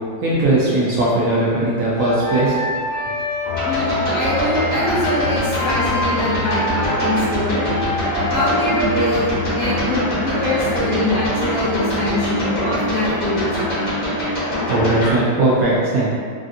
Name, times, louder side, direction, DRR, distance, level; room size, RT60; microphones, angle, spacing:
voice 1, 0.2-2.6 14.7-16.1, right 2 dB, 75° right, -7 dB, 0.8 m, -18 dB
sound 1, 2.0-9.2, equal, 75° left, 1.4 m, -25 dB
sound 2, 3.4-15.1, left 1 dB, 45° left, 0.7 m, -23 dB
voice 2, 3.6-7.6 8.3-13.9, left 1 dB, 5° left, -11 dB, 0.5 m, -23 dB
3.4 x 2.4 x 2.5 m, 2.1 s
omnidirectional pair, 2.0 m